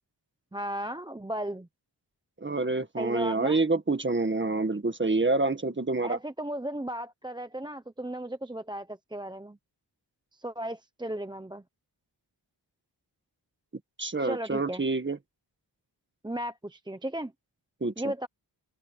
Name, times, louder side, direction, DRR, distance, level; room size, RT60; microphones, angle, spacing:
voice 1, 0.5-1.7 3.0-3.6 6.0-9.6 10.3-11.6 14.2-14.8 16.2-17.3 18.0-18.3, right 1 dB, 10° right, 0.8 m, -35 dB
voice 2, 2.4-6.2 14.0-15.2 17.8-18.1, right 3 dB, 25° right, 1.9 m, -27 dB
open air
wide cardioid pair, 125°, 44 cm